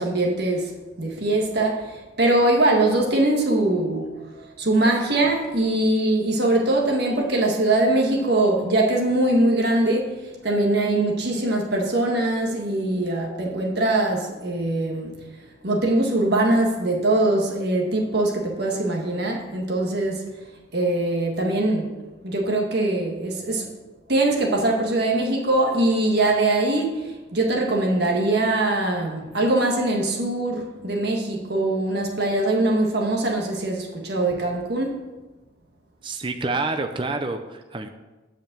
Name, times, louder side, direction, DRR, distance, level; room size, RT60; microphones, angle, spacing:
voice 1, 0.0-15.2 15.6-20.2 20.7-21.9 22.2-23.7 24.1-35.0, right 2 dB, 55° right, 0 dB, 1.6 m, -22 dB
voice 2, 36.0-37.9, right 3 dB, 25° right, 6 dB, 0.5 m, -28 dB
9.6 x 5.2 x 7.4 m, 1.2 s
head